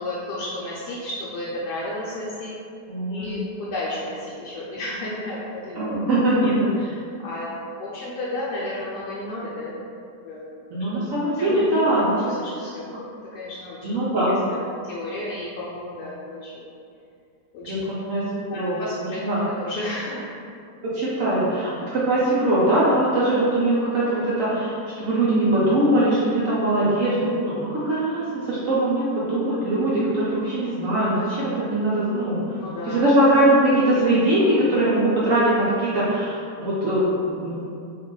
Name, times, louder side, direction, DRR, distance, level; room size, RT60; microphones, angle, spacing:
voice 1, 0.0-2.5 3.1-7.5 7.8-9.8 10.2-10.5 10.9-12.9 13.3-16.7 17.5-17.9 18.5-19.2 19.6-20.2 32.5-33.0, left 1 dB, 75° left, -8 dB, 1.1 m, -33 dB
voice 2, 2.9-3.4 5.8-6.7 10.7-12.4 13.8-14.3 17.7-18.8 19.2-19.4 20.8-32.4 32.9-37.6, right 1 dB, 65° right, -8 dB, 0.8 m, -21 dB
2.8 x 2.4 x 3.7 m, 2.4 s
omnidirectional pair, 1.8 m